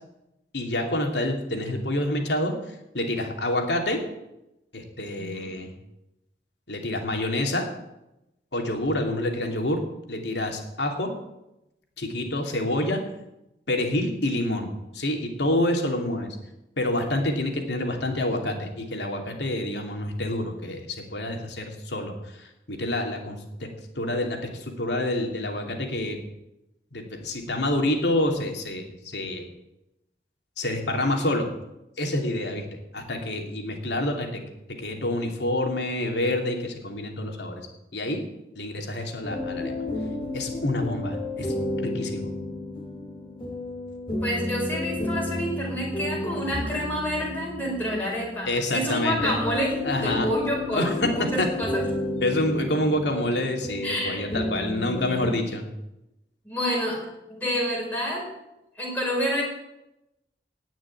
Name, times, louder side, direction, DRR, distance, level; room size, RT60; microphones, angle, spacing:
voice 1, 0.5-2.5 2.9-4.0 4.7-5.7 6.7-7.7 8.5-9.8 10.1-11.1 12.0-13.0 13.7-14.7 14.9-16.4 16.8-20.8 21.1-22.1 22.4-23.7 24.0-26.2 26.9-28.8 29.1-29.4 30.6-31.5 32.0-32.7 32.9-34.4 34.8-37.6 37.9-38.2 38.6-39.7 40.3-42.3 48.5-49.4 49.9-50.3 50.7-50.9 51.4-51.5 52.2-55.7, left 1 dB, 80° left, 3 dB, 2.8 m, -27 dB
voice 2, 5.2-5.5 44.2-51.9 53.8-54.3 56.4-57.0 57.3-58.3 58.8-59.4, equal, 10° left, -3 dB, 5.1 m, -28 dB
sound 1, 39.2-55.3, left 2 dB, 30° left, 2.0 m, -32 dB
18.0 x 6.2 x 9.8 m, 0.92 s
head